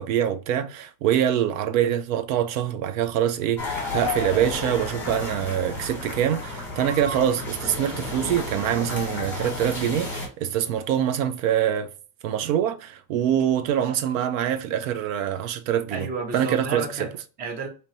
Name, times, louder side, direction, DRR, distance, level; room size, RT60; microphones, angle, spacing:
voice 1, 0.0-11.9 12.2-16.1 16.3-16.8, right 10 dB, 70° right, 0.6 m, -24 dB
sound 1, 3.6-10.3, left 2 dB, 5° left, 1.1 m, -32 dB
voice 2, 15.9-17.7, right 4 dB, 20° right, 0.6 m, -32 dB
4.2 x 2.8 x 2.9 m
supercardioid pair, 170°, 41 cm